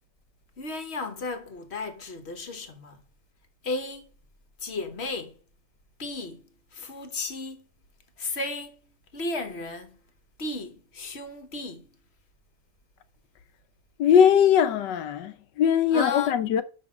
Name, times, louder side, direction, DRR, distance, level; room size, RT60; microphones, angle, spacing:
voice 1, 0.6-3.0 3.6-4.1 4.6-5.4 6.0-7.7 8.2-8.8 9.1-10.0 10.4-11.9 15.9-16.4, left 3 dB, 40° left, 1.3 m, -34 dB
voice 2, 14.0-16.6, left 8 dB, 80° left, 1.4 m, -20 dB
5.9 x 5.9 x 5.9 m
omnidirectional pair, 1.9 m